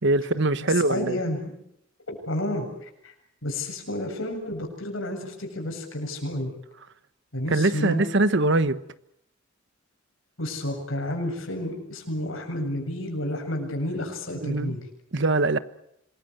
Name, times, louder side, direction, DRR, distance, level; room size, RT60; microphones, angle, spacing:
voice 1, 0.0-1.2 7.5-8.8 14.4-14.8 15.1-15.6, right 2 dB, 60° right, 1.2 m, -22 dB
voice 2, 0.7-1.5 2.1-3.1 3.4-6.5 7.3-8.0 10.4-14.8, left 1 dB, 75° left, 7.5 m, -31 dB
26.5 x 21.5 x 8.0 m
head